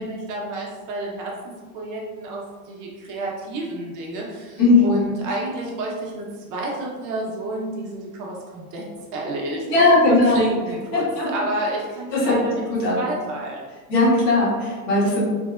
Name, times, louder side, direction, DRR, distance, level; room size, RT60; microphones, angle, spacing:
voice 1, 0.0-8.8 9.1-12.6 13.0-13.6, right 2 dB, 40° right, -2 dB, 0.8 m, -30 dB
voice 2, 4.6-5.1 9.7-10.4 10.9-11.3 12.1-12.4 12.7-13.0 13.9-15.3, left 2 dB, 85° left, -7 dB, 1.5 m, -18 dB
3.3 x 2.1 x 2.3 m, 1.4 s
hypercardioid pair, 110°, 49 cm